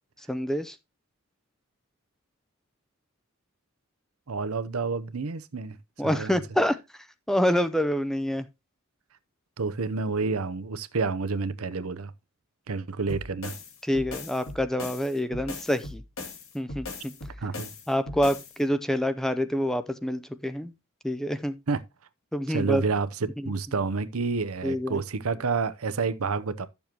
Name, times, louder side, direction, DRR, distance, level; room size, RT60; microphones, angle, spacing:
voice 1, 0.3-0.8 6.0-6.8 7.3-8.5 13.8-16.0 16.5-17.1 17.9-20.7 21.0-21.6 22.3-22.8 23.4-23.5 24.6-25.0, equal, ahead, 0.4 m, -27 dB
voice 2, 4.3-5.8 6.0-6.4 9.6-12.1 12.7-13.5 17.4-17.7 21.7-21.8 22.5-26.7, right 4 dB, 80° right, 0.7 m, -29 dB
sound 1, 13.1-18.6, left 2 dB, 75° left, 2.8 m, -39 dB
12.0 x 7.1 x 2.9 m
head